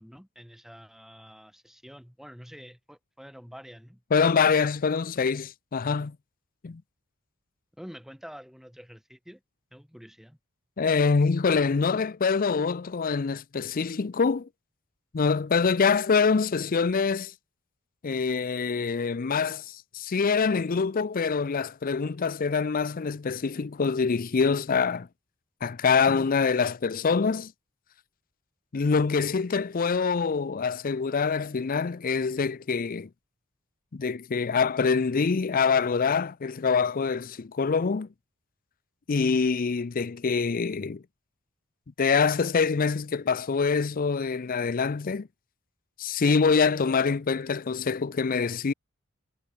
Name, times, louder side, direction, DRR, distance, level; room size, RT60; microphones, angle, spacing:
voice 1, 0.0-4.0 7.8-9.4 9.7-10.4, equal, ahead, 5.8 m, -47 dB
voice 2, 4.1-6.2 6.6-6.8 10.8-14.5 15.1-17.3 18.0-25.1 25.6-27.5 28.7-33.1 33.9-38.1 39.1-41.0 42.0-45.3 46.0-48.7, left 5 dB, 40° left, 0.5 m, -25 dB
head